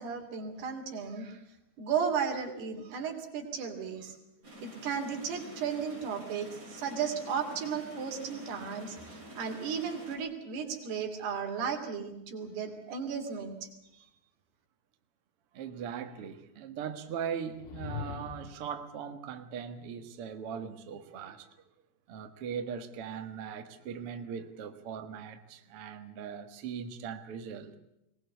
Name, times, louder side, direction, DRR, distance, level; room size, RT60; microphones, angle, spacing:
voice 1, 0.0-1.4 1.8-4.1 4.6-13.7, right 6 dB, 80° right, 4 dB, 4.9 m, -35 dB
sound 1, 4.4-10.2, right 1 dB, 20° right, 7.5 m, -48 dB
voice 2, 15.5-21.5 22.1-27.8, right 7 dB, 50° right, 7 dB, 1.8 m, -40 dB
sound 2, 17.5-18.7, left 8 dB, 85° left, 3.4 m, -41 dB
22.0 x 19.5 x 8.1 m, 0.85 s
omnidirectional pair, 4.5 m